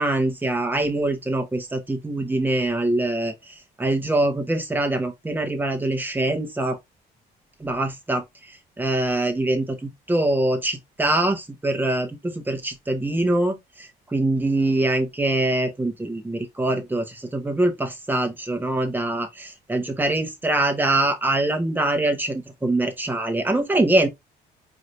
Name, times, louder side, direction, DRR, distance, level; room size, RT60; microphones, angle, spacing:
voice 1, 0.0-6.8 7.6-8.2 8.8-24.1, right 2 dB, 10° right, 1.2 m, -24 dB
4.8 x 2.8 x 3.2 m
cardioid pair, 110°, 17 cm